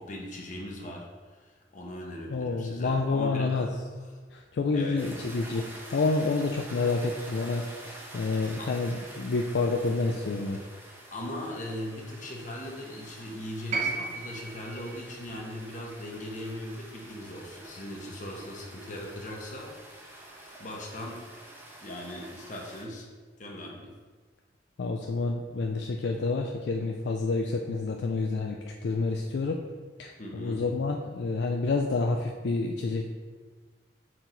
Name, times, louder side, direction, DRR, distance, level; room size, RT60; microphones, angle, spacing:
voice 1, 0.0-3.7 4.0-4.2 4.7-5.1 8.6-8.7 11.1-19.7 20.6-21.2 21.8-23.1 23.4-23.9 30.2-30.6, left 1 dB, 45° left, 0 dB, 1.0 m, -39 dB
voice 2, 2.3-3.7 4.3-10.6 24.8-29.6 30.0-33.1, left 3 dB, 70° left, 2 dB, 0.4 m, -29 dB
sound 1, 5.0-22.8, right 1 dB, 10° right, 1.0 m, -47 dB
sound 2, 13.7-17.9 19.1-19.2, right 4 dB, 40° right, 1.0 m, -36 dB
5.8 x 4.6 x 3.9 m, 1.5 s
head